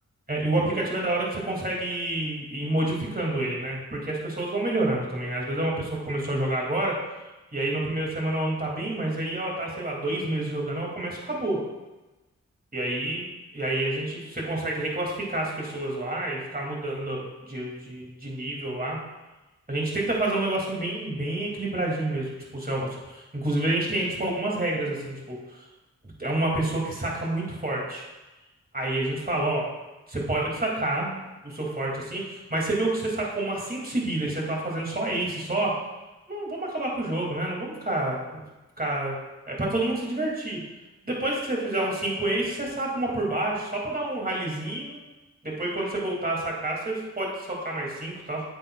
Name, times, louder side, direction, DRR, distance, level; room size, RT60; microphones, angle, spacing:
voice 1, 0.3-7.0 7.5-11.6 12.7-13.2 13.5-19.0 19.7-25.6 26.2-28.0 28.7-29.6 30.1-31.2 31.4-35.7 36.3-38.4 38.8-39.2 39.5-40.6 41.0-45.0 45.4-48.4, right 1 dB, 30° right, -2 dB, 2.7 m, -28 dB
9.4 x 7.7 x 2.5 m, 1.1 s
cardioid pair, 50°, 29 cm